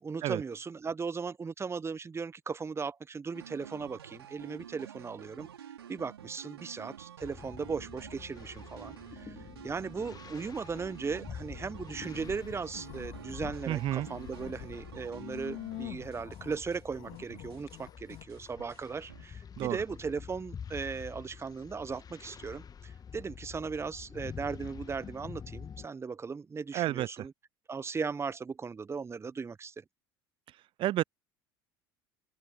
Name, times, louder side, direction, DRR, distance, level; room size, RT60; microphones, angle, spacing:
voice 1, 0.0-5.5 5.9-9.4 9.6-27.3 27.7-29.8, right 5 dB, 20° right, 1.0 m, -37 dB
sound 1, 3.3-16.8 17.1-17.8 18.1-19.3, right 9 dB, 80° right, 4.9 m, -49 dB
sound 2, 7.2-25.9, left 7 dB, 30° left, 1.6 m, -48 dB
sound 3, 12.0-13.6 14.0-18.2, left 17 dB, 50° left, 2.8 m, -46 dB
voice 2, 13.7-14.1 19.6-19.8 26.7-27.3 30.8-31.0, right 14 dB, 40° right, 0.5 m, -30 dB
open air
figure-of-eight pair, 65°, 13 cm